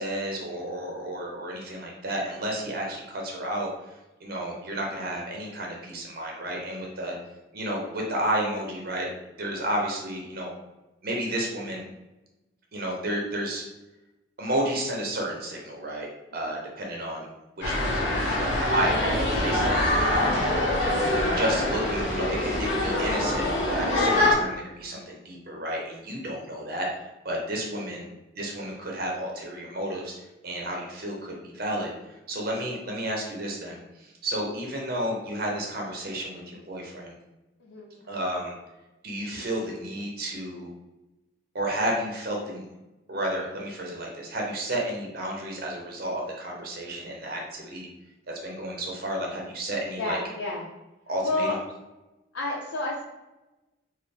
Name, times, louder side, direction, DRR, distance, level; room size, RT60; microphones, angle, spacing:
voice 1, 0.0-7.1 7.5-9.1 9.4-10.5 11.0-11.8 12.7-13.6 14.4-17.3 17.6-20.3 21.3-28.1 28.4-31.9 32.3-37.1 38.1-38.5 39.0-40.7 41.5-42.6 43.1-47.9 48.4-50.2 51.1-51.6, right 1 dB, 45° right, -1 dB, 0.6 m, -32 dB
sound 1, 17.6-24.3, left 1 dB, 65° left, 1.0 m, -24 dB
voice 2, 37.6-38.2 50.0-50.6 51.2-51.6 52.3-53.0, left 2 dB, 90° left, -5 dB, 0.6 m, -30 dB
4.1 x 2.1 x 3.3 m, 1.0 s
head